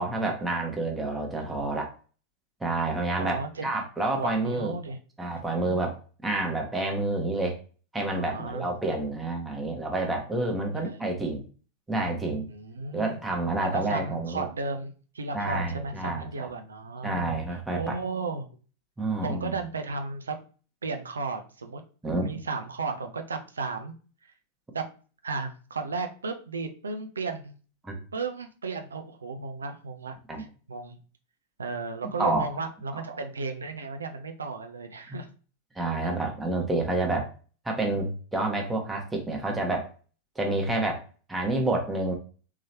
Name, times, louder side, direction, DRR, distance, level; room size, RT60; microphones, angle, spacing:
voice 1, 0.0-1.9 2.6-3.4 3.6-4.7 5.2-7.6 7.9-11.4 11.9-12.5 12.9-14.4 15.3-16.5 17.0-18.0 19.0-19.6 22.0-22.3 27.8-28.0 30.3-30.4 32.2-32.5 32.9-33.0 35.1-35.2 35.7-37.3 37.6-39.9 40.4-41.0 41.3-42.1, right 2 dB, 10° right, 1 dB, 1.1 m, -29 dB
voice 2, 1.3-1.7 3.2-3.7 4.2-5.0 8.1-8.7 10.7-11.0 12.5-13.2 13.7-17.2 17.7-18.5 19.2-20.4 20.8-21.8 22.2-23.9 24.7-24.8 25.2-27.6 28.1-30.1 30.7-31.0 31.6-35.3, right 4 dB, 75° right, 6 dB, 0.6 m, -34 dB
3.8 x 3.1 x 2.8 m, 0.38 s
figure-of-eight pair, 90°, 0 cm